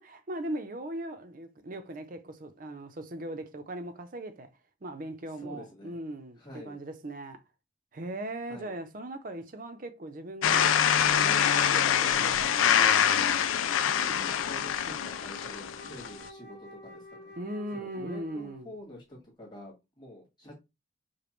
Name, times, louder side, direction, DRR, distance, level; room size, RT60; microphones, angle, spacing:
voice 1, 0.0-4.5 4.8-7.4 7.9-10.8 11.1-13.1 17.4-18.7, right 1 dB, 45° right, 0.5 m, -39 dB
voice 2, 5.4-5.9 6.4-6.8 8.5-8.7 13.8-17.3 17.7-20.6, equal, 20° left, 1.6 m, -47 dB
sound 1, 10.4-16.2, left 9 dB, 85° left, 0.4 m, -25 dB
Wind instrument woodwind instrument, 13.6-18.8, left 1 dB, 55° left, 0.9 m, -49 dB
5.0 x 2.1 x 3.1 m
head